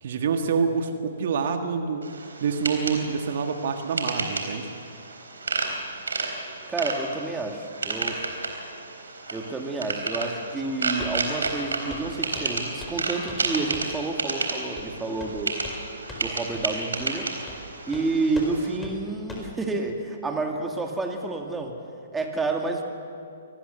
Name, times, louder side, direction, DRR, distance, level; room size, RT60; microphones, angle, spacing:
voice 1, 0.0-2.0 2.4-4.7, right 5 dB, 55° right, 5 dB, 1.8 m, -26 dB
sound 1, 2.0-18.8, right 3 dB, 80° right, 3.9 m, -32 dB
voice 2, 6.7-8.3 9.3-15.6 16.2-17.3 17.9-21.8 22.1-22.8, right 3 dB, 10° right, 2 dB, 2.3 m, -29 dB
Walk footsteps, 11.0-11.2 11.4-11.6 11.9-12.1 12.4-13.0 13.3-13.5 13.7-14.0 14.8-14.9 15.2-15.8 16.1-16.3 16.5-16.7 17.0-17.2 17.5-17.6 17.9-18.1 18.4-18.5 18.8-18.9 19.3-19.5, left 1 dB, 10° left, 4.6 m, -39 dB
25.5 x 19.0 x 6.9 m, 2.6 s
figure-of-eight pair, 125°, 0 cm